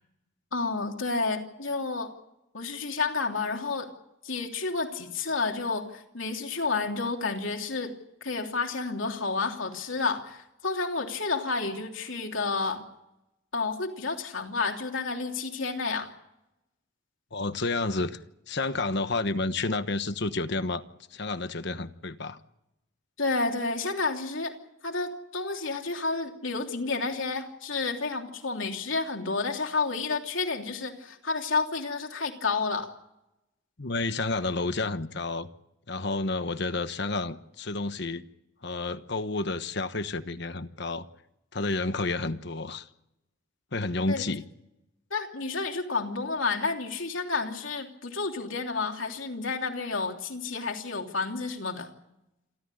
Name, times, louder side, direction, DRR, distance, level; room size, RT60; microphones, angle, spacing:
voice 1, 0.5-2.1 2.5-3.9 4.2-7.9 8.2-12.8 13.5-16.1 23.2-24.6 24.8-32.9 44.1-44.2 45.1-51.9, left 4 dB, 70° left, 3.1 m, -30 dB
voice 2, 17.3-18.2 18.5-20.8 21.1-22.4 33.8-35.5 35.9-38.2 38.6-41.1 41.5-42.9 43.7-44.4, left 3 dB, 55° left, 1.2 m, -30 dB
28.0 x 13.0 x 9.9 m
head